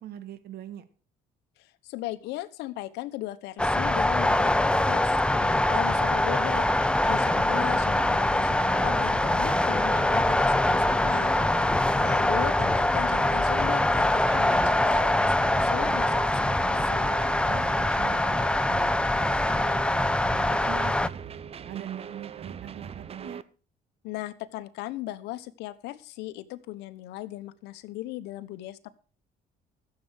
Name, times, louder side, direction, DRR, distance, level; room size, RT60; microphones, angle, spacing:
voice 1, 0.0-0.8 17.4-23.4, right 11 dB, 70° right, 12 dB, 1.8 m, -43 dB
voice 2, 1.6-17.2 24.0-28.9, left 16 dB, 90° left, 13 dB, 1.1 m, -38 dB
sound 1, 3.6-21.1, left 1 dB, 5° left, 0.6 m, -24 dB
sound 2, 5.4-23.4, right 7 dB, 35° right, 0.7 m, -40 dB
14.0 x 7.8 x 6.3 m, 0.39 s
cardioid pair, 110°, 17 cm